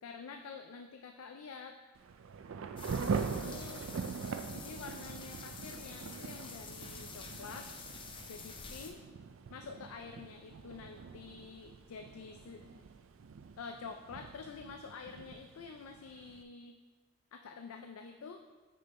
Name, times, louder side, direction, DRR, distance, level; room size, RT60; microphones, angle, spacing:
voice 1, 0.0-1.8 3.1-3.9 4.5-7.7 8.3-9.0 9.5-12.8 13.6-16.8 17.3-18.4, left 5 dB, 80° left, 6 dB, 0.4 m, -48 dB
Thunder / Rain, 2.0-16.4, right 5 dB, 65° right, 0.4 m, -42 dB
sound 1, 2.8-8.9, left 4 dB, 25° left, 0.5 m, -48 dB
6.7 x 5.3 x 4.2 m, 1.4 s
head